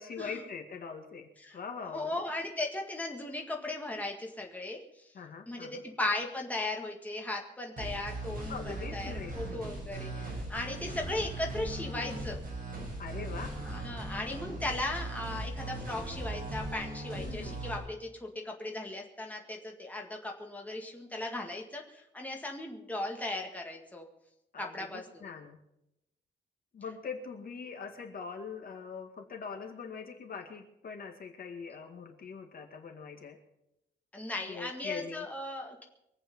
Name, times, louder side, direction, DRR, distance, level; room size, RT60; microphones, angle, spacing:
voice 1, 0.0-2.2 5.1-5.8 8.5-9.3 10.7-10.8 13.0-13.5 17.2-17.6 24.5-25.6 26.7-33.4 34.5-35.3, left 5 dB, 55° left, 4 dB, 2.1 m, -42 dB
voice 2, 1.8-4.8 5.5-12.4 13.7-24.0 24.6-25.3 34.1-35.8, left 2 dB, 10° left, 0 dB, 1.9 m, -37 dB
sound 1, 7.8-17.8, right 2 dB, 50° right, 7.3 m, -39 dB
24.0 x 8.7 x 5.4 m, 0.85 s
wide cardioid pair, 175°, 18 cm